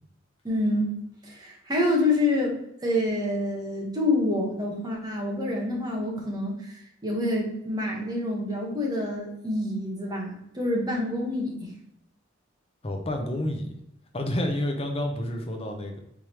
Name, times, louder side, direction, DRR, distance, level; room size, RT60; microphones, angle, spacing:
voice 1, 0.4-0.9 1.3-2.5 2.8-6.7 7.0-11.7, left 1 dB, 20° right, -1 dB, 1.2 m, -27 dB
voice 2, 12.8-13.7 14.1-16.0, left 1 dB, 30° left, 4 dB, 0.7 m, -29 dB
4.8 x 3.6 x 2.9 m, 0.78 s
head